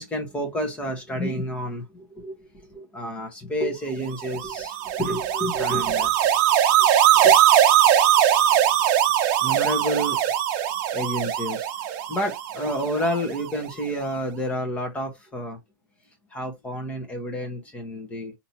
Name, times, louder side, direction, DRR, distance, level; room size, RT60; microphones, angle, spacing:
voice 1, 0.0-6.3 6.8-6.9 7.1-7.4 9.4-10.2 10.9-11.7 12.1-15.6 16.3-18.3, equal, 10° left, 1.3 m, -30 dB
sound 1, 4.2-13.5, right 10 dB, 45° right, 0.8 m, -21 dB
3.6 x 2.9 x 2.9 m
supercardioid pair, 150°, 11 cm